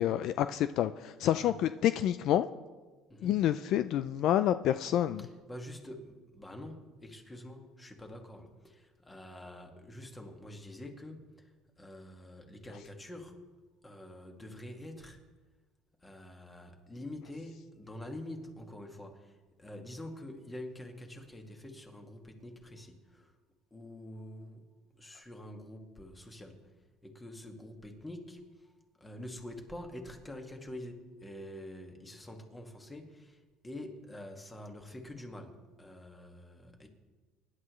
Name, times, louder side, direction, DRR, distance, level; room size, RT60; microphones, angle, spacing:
voice 1, 0.0-2.5 3.2-5.2, left 11 dB, 55° left, 12 dB, 0.4 m, -28 dB
voice 2, 5.2-13.4 13.8-15.2 16.0-23.4 23.7-24.7 24.9-26.7 27.0-28.7 29.0-36.9, left 1 dB, 10° left, 3 dB, 1.9 m, -46 dB
24.5 x 11.0 x 3.2 m, 1.3 s
cardioid pair, 135°, 0 cm